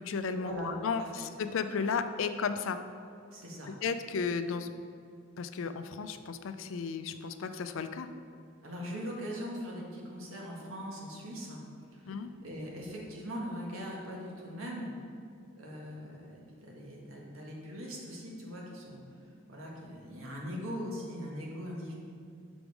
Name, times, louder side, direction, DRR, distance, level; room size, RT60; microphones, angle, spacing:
voice 1, 0.0-2.8 3.7-4.7 5.4-8.1 12.1-12.3, left 5 dB, 70° left, 10 dB, 0.4 m, -34 dB
voice 2, 3.3-3.7 8.6-11.6 11.9-12.2 12.4-14.9 15.6-19.0 19.5-21.9, equal, 85° right, -2 dB, 1.4 m, -40 dB
6.2 x 5.2 x 4.7 m, 2.4 s
head